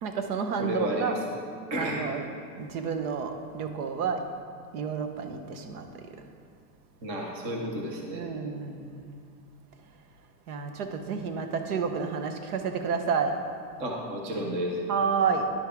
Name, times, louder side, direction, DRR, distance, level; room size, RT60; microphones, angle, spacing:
voice 1, 0.0-1.1 1.8-2.2 2.6-4.2 4.7-5.9 8.1-9.2 10.5-13.4 14.9-15.5, right 6 dB, 70° right, 7 dB, 1.0 m, -30 dB
voice 2, 0.6-1.2 1.7-2.0 7.0-8.2 13.8-14.8, equal, 15° right, 0 dB, 0.4 m, -32 dB
10.5 x 8.2 x 3.5 m, 2.2 s
supercardioid pair, 160°, 46 cm